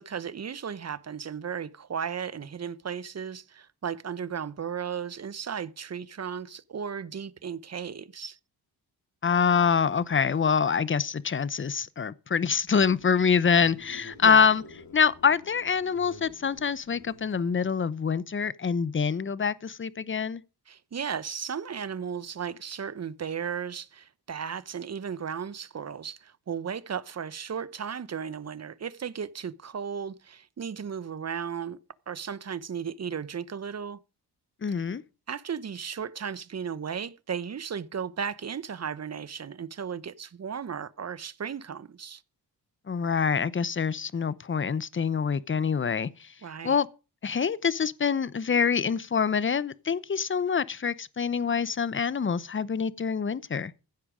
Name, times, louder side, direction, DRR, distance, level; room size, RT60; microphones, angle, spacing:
voice 1, 0.0-8.4 14.2-14.5 20.7-31.8 32.1-34.0 35.3-42.2 46.4-46.8, right 7 dB, 40° right, 0.9 m, -35 dB
voice 2, 9.2-14.6 14.9-20.4 34.6-35.0 42.9-46.3 46.6-46.9 47.2-53.7, left 6 dB, 30° left, 0.8 m, -25 dB
sound 1, 12.6-17.7, left 3 dB, 60° left, 3.2 m, -50 dB
15.5 x 8.5 x 5.1 m
cardioid pair, 70°, 40 cm